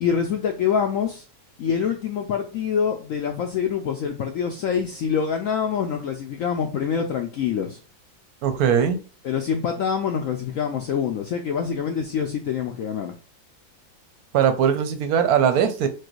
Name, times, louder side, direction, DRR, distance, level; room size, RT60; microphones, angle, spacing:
voice 1, 0.0-1.3 1.6-7.8 9.2-13.1, left 7 dB, 75° left, 4 dB, 0.7 m, -25 dB
voice 2, 8.4-9.0 14.3-15.9, right 8 dB, 70° right, 9 dB, 1.0 m, -20 dB
4.7 x 2.2 x 4.5 m, 0.37 s
omnidirectional pair, 1.9 m